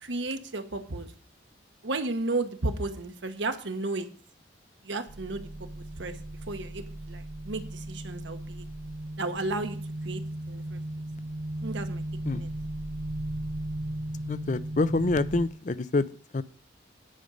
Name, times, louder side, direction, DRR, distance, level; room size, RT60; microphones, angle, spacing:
voice 1, 0.0-1.1 1.8-4.1 4.8-5.5 5.8-6.2 6.5-8.6 9.2-9.8 10.0-10.2 10.5-10.8 11.6-12.0 12.3-12.5, right 2 dB, 70° right, 7 dB, 1.1 m, -33 dB
sound 1, 5.1-15.5, right 1 dB, 45° right, 0.5 m, -36 dB
voice 2, 14.3-16.1 16.3-16.4, left 3 dB, 40° left, 17 dB, 0.5 m, -26 dB
9.9 x 5.2 x 7.7 m, 0.43 s
head